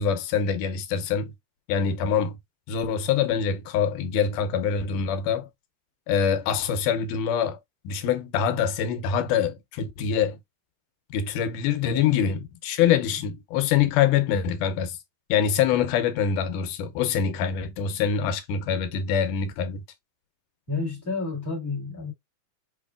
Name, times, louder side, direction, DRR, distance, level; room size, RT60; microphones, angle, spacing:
voice 1, 0.0-1.3 1.7-2.4 2.7-5.5 6.1-7.6 7.8-10.4 11.1-15.0 15.3-19.8, left 8 dB, 85° left, 2.3 m, -24 dB
voice 2, 20.7-22.1, left 4 dB, 30° left, 1.9 m, -30 dB
6.1 x 2.8 x 2.2 m
omnidirectional pair, 3.6 m